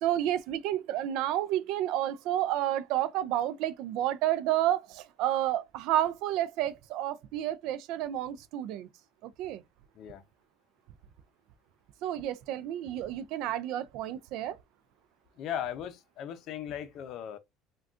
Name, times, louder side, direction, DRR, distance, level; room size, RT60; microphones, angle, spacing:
voice 1, 0.0-8.9 9.2-9.6 12.0-14.6, right 12 dB, 70° right, 0.4 m, -30 dB
voice 2, 15.4-17.4, left 9 dB, 60° left, 0.5 m, -37 dB
3.5 x 2.2 x 2.4 m
supercardioid pair, 105°, 0 cm